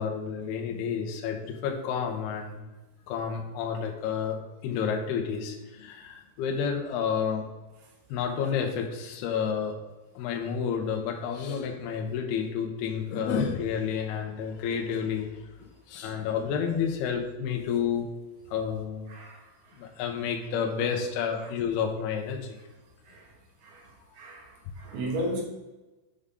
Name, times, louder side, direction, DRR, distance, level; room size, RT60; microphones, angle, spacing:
voice 1, 0.0-2.7 3.1-7.5 8.1-9.8 10.2-15.3 15.9-18.1 18.5-19.1 19.8-22.6, left 7 dB, 75° left, 2 dB, 2.4 m, -30 dB
voice 2, 24.2-24.5 24.8-25.4, right 1 dB, 65° right, 0 dB, 2.7 m, -33 dB
9.8 x 5.3 x 3.8 m, 1.1 s
omnidirectional pair, 5.9 m